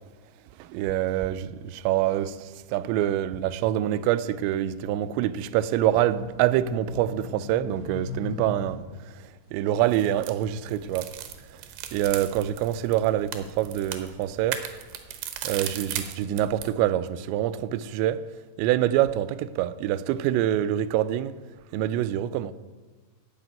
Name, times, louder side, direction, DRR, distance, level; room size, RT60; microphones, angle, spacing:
voice 1, 0.6-1.5 1.9-8.9 9.5-11.1 11.9-14.6 15.4-18.2 18.6-21.3 21.7-22.5, right 12 dB, 90° right, 2.8 m, -25 dB
sound 1, 5.7-11.2 11.8-13.6, left 4 dB, 80° left, 3.5 m, -41 dB
sound 2, 9.8-16.7, right 10 dB, 75° right, 2.5 m, -37 dB
9.7 x 7.3 x 9.0 m
omnidirectional pair, 5.0 m